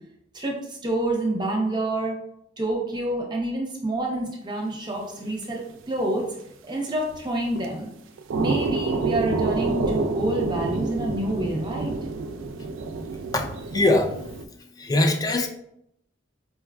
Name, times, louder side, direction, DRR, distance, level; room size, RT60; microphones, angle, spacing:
voice 1, 0.3-2.2 2.6-6.3 6.7-7.9 8.3-12.0, right 1 dB, 25° right, -1 dB, 0.7 m, -27 dB
sound 1, 5.2-5.3 5.5-5.6 6.2-6.3 6.9-7.2 7.5-7.7 8.2-14.5, right 3 dB, 80° right, 0.3 m, -28 dB
voice 2, 13.3-14.2 14.8-15.5, left 2 dB, 20° left, 5 dB, 0.3 m, -22 dB
4.4 x 2.3 x 2.3 m, 0.77 s
head